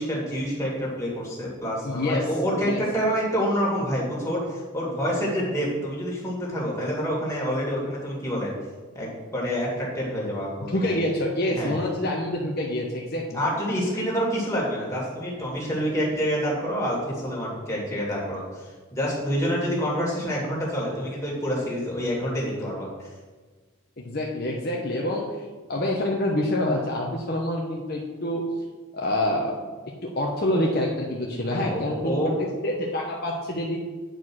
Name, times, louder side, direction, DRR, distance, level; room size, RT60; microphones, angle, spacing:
voice 1, 0.0-8.5 8.9-10.9 11.5-11.7 13.3-23.1 31.4-32.3, equal, 15° left, -5 dB, 2.4 m, -27 dB
voice 2, 1.8-2.3 2.7-2.8 10.7-13.4 24.0-25.3 25.7-28.4 28.9-29.5 30.2-32.3 32.6-33.8, left 1 dB, 45° left, -2 dB, 1.0 m, -26 dB
9.3 x 4.8 x 6.2 m, 1.4 s
head